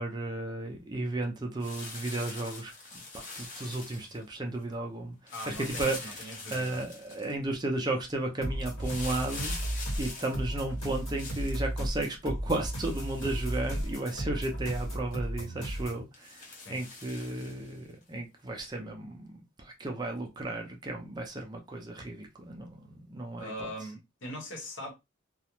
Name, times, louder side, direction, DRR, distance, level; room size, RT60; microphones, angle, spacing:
voice 1, 0.0-9.5 10.0-16.4 16.7-23.7, right 2 dB, 20° right, 0.4 m, -34 dB
sound 1, 1.6-4.2 5.3-7.3 8.8-11.6 12.5-14.1 14.6-14.7 15.1-15.2 16.1-17.8 18.6-18.7, left 3 dB, 40° left, 0.7 m, -44 dB
voice 2, 5.3-6.8 16.5-16.8 23.4-24.9, equal, 65° left, 0.9 m, -41 dB
sound 2, 8.4-16.0, right 1 dB, 90° left, 1.3 m, -34 dB
2.4 x 2.0 x 2.9 m
head